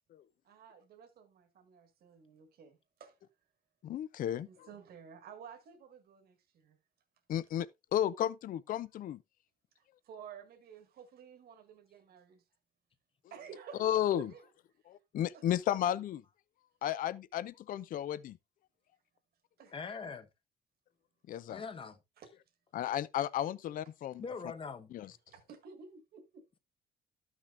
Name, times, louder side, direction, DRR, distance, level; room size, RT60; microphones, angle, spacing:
voice 1, 0.4-3.2 4.4-6.8 9.8-12.4 13.3-14.5 15.3-15.5 19.6-19.7 22.2-22.3 25.3-26.4, right 7 dB, 75° right, 1.8 m, -52 dB
voice 2, 3.8-4.7 7.3-7.7 7.9-9.2 13.8-14.3 14.9-16.2 16.8-18.4 21.3-21.6 22.7-24.2 24.9-25.1, left 11 dB, 60° left, 0.4 m, -33 dB
voice 3, 19.7-20.3 21.5-22.0 24.2-24.9, left 5 dB, 35° left, 0.9 m, -42 dB
13.5 x 6.1 x 2.5 m
cardioid pair, 135°, 16 cm